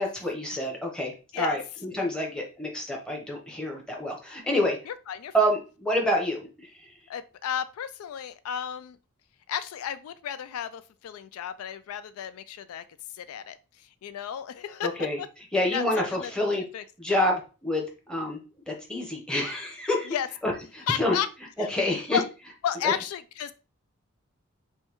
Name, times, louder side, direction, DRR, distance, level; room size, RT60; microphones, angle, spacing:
voice 1, 0.0-4.8 5.3-7.0 14.8-15.2 15.5-16.6 17.0-20.1 20.4-21.2 21.7-22.2 22.8-22.9, left 1 dB, 5° left, 0.9 m, -28 dB
voice 2, 4.9-5.5 7.1-9.0 9.5-12.8 13.1-13.6 14.0-15.3 15.7-15.8 16.2-16.3 16.7-16.8 17.1-17.2 20.1-20.3 20.9-21.3 21.6-21.7 22.1-22.2 22.6-23.5, left 8 dB, 80° left, 0.3 m, -32 dB
5.4 x 2.3 x 3.0 m
head